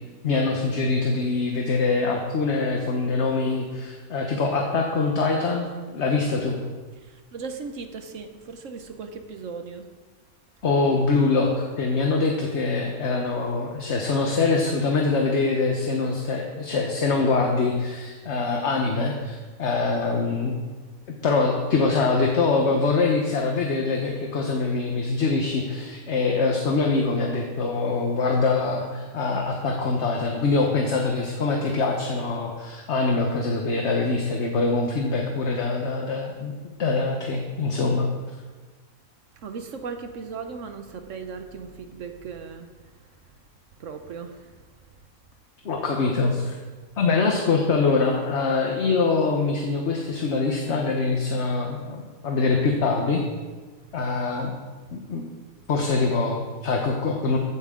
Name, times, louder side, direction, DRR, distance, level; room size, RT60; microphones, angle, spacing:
voice 1, 0.2-6.6 10.6-20.6 21.2-36.5 36.8-38.1 45.6-46.5 47.0-53.2 53.9-54.5 54.9-55.3 55.7-57.4, left 3 dB, 55° left, 1 dB, 1.3 m, -24 dB
voice 2, 7.0-9.9 39.4-42.7 43.8-44.5, right 5 dB, 65° right, 7 dB, 1.2 m, -37 dB
15.0 x 9.0 x 3.7 m, 1.4 s
omnidirectional pair, 1.5 m